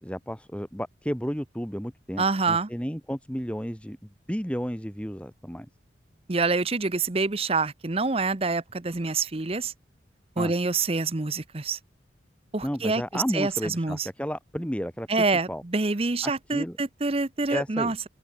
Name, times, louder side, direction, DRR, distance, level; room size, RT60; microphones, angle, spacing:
voice 1, 0.0-5.7 10.4-10.5 12.6-15.1 15.5-15.6 16.2-16.8 17.5-17.9, equal, 5° left, 4.0 m, -32 dB
voice 2, 2.2-2.7 6.3-9.7 10.4-11.8 12.5-14.1 15.1-18.0, right 3 dB, 30° right, 0.8 m, -26 dB
head